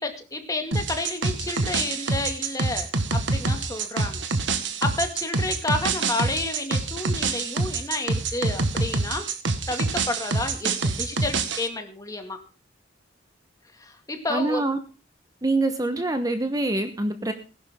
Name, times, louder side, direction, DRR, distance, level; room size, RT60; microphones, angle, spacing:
voice 1, 0.0-4.2 4.8-9.3 9.7-12.4 13.8-14.6, left 2 dB, 20° left, 5 dB, 2.1 m, -30 dB
sound 1, 0.7-11.7, right 3 dB, 80° right, 1.5 m, -26 dB
voice 2, 14.3-14.8 15.4-17.3, right 2 dB, 20° right, 8 dB, 1.1 m, -25 dB
19.5 x 11.5 x 3.7 m, 0.33 s
head